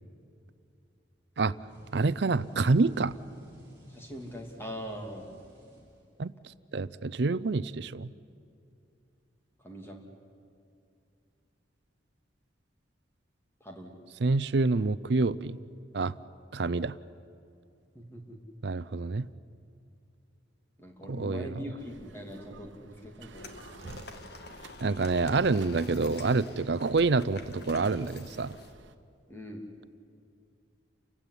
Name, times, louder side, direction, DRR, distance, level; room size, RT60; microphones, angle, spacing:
sound 1, 1.5-6.4, equal, 15° right, 7.0 m, -54 dB
voice 1, 1.9-3.1 6.2-6.3 6.7-8.1 14.2-15.6 15.9-16.2 16.5-17.0 18.6-19.3 21.1-21.6 24.8-28.5, right 3 dB, 60° right, 17 dB, 0.5 m, -27 dB
voice 2, 3.9-5.3 9.6-10.0 13.6-13.9 17.9-18.4 20.8-23.5 29.3-29.7, equal, 10° left, 1 dB, 2.8 m, -42 dB
sound 2, 21.8-29.0, right 3 dB, 80° right, 1.1 m, -52 dB
sound 3, 23.3-28.7, left 2 dB, 55° left, 1.7 m, -47 dB
29.0 x 16.0 x 9.9 m, 2.5 s
head